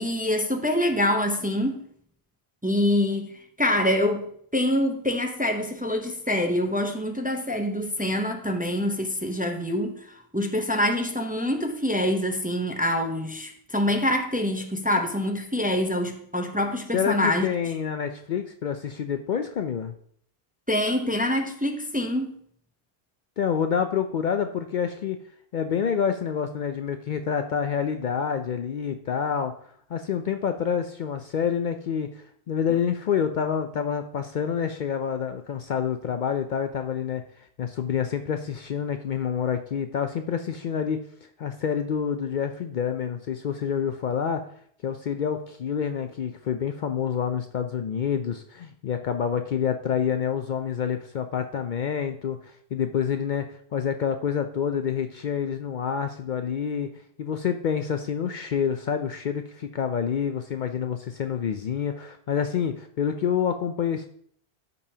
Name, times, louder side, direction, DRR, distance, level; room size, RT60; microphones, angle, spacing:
voice 1, 0.0-1.8 2.6-17.5 20.7-22.4, left 1 dB, 10° right, 4 dB, 0.6 m, -25 dB
voice 2, 16.9-19.9 23.4-25.2 25.5-29.5 29.9-37.2 37.6-41.0 41.4-44.4 44.8-56.9 57.2-64.1, left 7 dB, 60° left, 7 dB, 0.6 m, -27 dB
13.5 x 5.4 x 2.8 m, 0.64 s
omnidirectional pair, 1.0 m